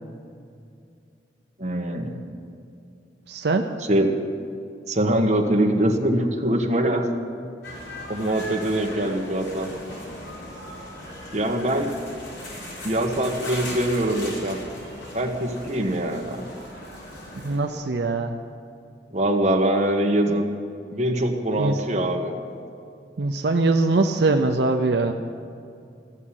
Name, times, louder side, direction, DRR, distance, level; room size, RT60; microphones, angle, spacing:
voice 1, 1.6-2.2 3.9-4.1 4.9-7.1 8.1-9.7 11.3-11.9 12.8-14.6 15.1-16.4 19.1-20.5 20.9-22.3, right 1 dB, 40° right, 1 dB, 1.3 m, -23 dB
voice 2, 3.3-3.7 17.4-18.3 20.3-20.4 21.6-21.8 23.2-25.1, right 3 dB, 70° right, 4 dB, 0.6 m, -22 dB
sound 1, 7.6-17.6, left 1 dB, 80° left, 4.1 m, -38 dB
15.0 x 7.3 x 9.9 m, 2.5 s
head